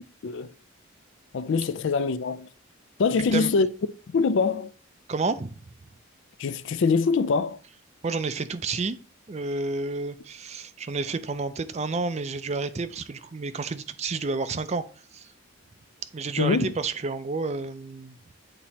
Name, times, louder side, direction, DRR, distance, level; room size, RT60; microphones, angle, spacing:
voice 1, 1.3-2.5 3.0-3.7 4.1-4.7 6.4-7.6 16.4-16.7, left 4 dB, 55° left, 0.4 m, -24 dB
voice 2, 3.2-3.5 5.1-5.5 8.0-9.0 9.3-14.8 15.1-15.3 16.1-18.2, right 3 dB, 30° right, 0.4 m, -30 dB
8.7 x 2.9 x 4.1 m
head